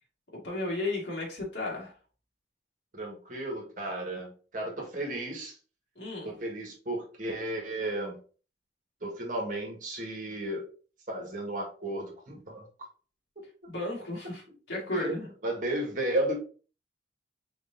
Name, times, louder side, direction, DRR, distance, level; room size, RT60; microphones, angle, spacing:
voice 1, 0.4-1.9 6.0-6.3 13.7-14.4 14.7-15.3, left 2 dB, 80° left, -2 dB, 1.8 m, -33 dB
voice 2, 2.9-5.6 6.2-8.2 9.0-10.6 11.1-12.7 14.9-15.1 15.4-16.4, right 1 dB, 45° right, 0 dB, 1.4 m, -33 dB
4.5 x 3.9 x 2.6 m, 0.38 s
head